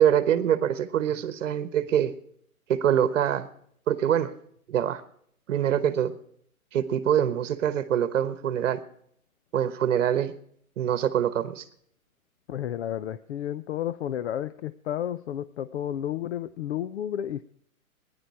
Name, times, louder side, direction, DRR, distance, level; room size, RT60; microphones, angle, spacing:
voice 1, 0.0-2.1 2.7-3.5 3.9-4.3 4.7-5.0 5.5-6.1 6.7-8.8 9.5-10.3 10.8-11.6, right 9 dB, 55° right, 13 dB, 1.1 m, -24 dB
voice 2, 12.5-17.4, left 11 dB, 50° left, 15 dB, 0.6 m, -32 dB
15.5 x 10.5 x 4.7 m, 0.65 s
hypercardioid pair, 145°, 43 cm